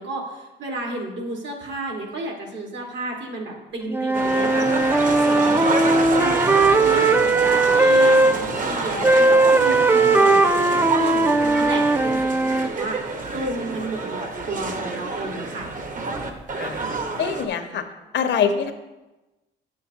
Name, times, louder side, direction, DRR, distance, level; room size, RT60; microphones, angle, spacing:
voice 1, 0.0-15.7, right 2 dB, 65° right, 0 dB, 1.9 m, -32 dB
Wind instrument woodwind instrument, 3.9-8.4 9.0-12.7, right 2 dB, 10° right, 0.5 m, -18 dB
sound 1, 4.1-17.4, right 3 dB, 40° right, 1.1 m, -28 dB
voice 2, 16.6-16.9 17.2-17.8 18.1-18.7, left 7 dB, 65° left, 7 dB, 0.9 m, -24 dB
8.9 x 7.5 x 2.9 m, 1.1 s
cardioid pair, 90°, 20 cm